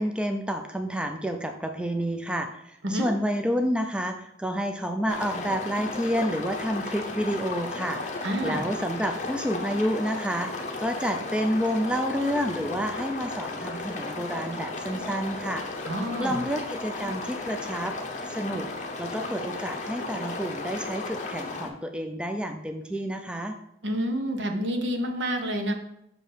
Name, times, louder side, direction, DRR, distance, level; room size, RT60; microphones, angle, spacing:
voice 1, 0.0-8.0 8.4-15.6 16.2-18.0 18.3-18.7 19.0-23.6, equal, 5° right, 5 dB, 0.4 m, -29 dB
sound 1, 5.1-21.7, left 3 dB, 40° left, 0.8 m, -35 dB
voice 2, 8.2-8.6 15.8-16.4 23.8-25.7, equal, 80° right, 4 dB, 0.9 m, -28 dB
6.1 x 4.4 x 5.0 m, 0.80 s
head